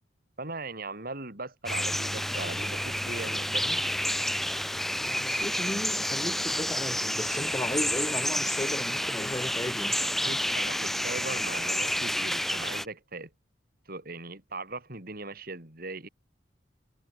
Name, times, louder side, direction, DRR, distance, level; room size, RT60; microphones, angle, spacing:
voice 1, 0.4-3.8 10.0-13.3 13.9-16.1, right 2 dB, 55° right, 4.7 m, -39 dB
sound 1, 1.7-12.9, equal, ahead, 0.4 m, -30 dB
voice 2, 5.0-9.9, left 1 dB, 20° left, 1.4 m, -35 dB
head